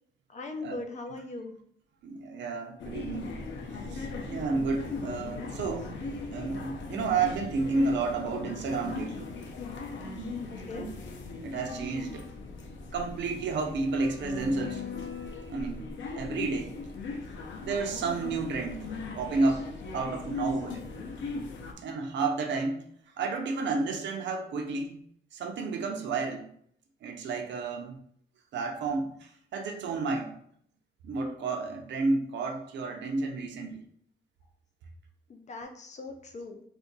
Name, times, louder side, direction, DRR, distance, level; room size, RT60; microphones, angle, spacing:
voice 1, 0.3-1.6 7.7-7.9 10.7-10.9 35.3-36.6, left 3 dB, 40° left, 4 dB, 0.4 m, -39 dB
voice 2, 2.0-3.3 3.7-5.9 6.3-9.3 10.0-10.4 10.7-10.9 11.4-12.2 12.9-14.8 15.5-15.9 16.2-16.7 17.6-18.9 19.2-20.9 21.8-22.9 23.2-25.0 25.3-26.5 27.0-28.0 28.5-30.4 31.0-33.8, right 3 dB, 75° right, 3 dB, 0.6 m, -31 dB
sound 1, 2.8-21.7, left 3 dB, 90° left, 0.6 m, -39 dB
2.6 x 2.5 x 3.9 m, 0.65 s
wide cardioid pair, 160°, 18 cm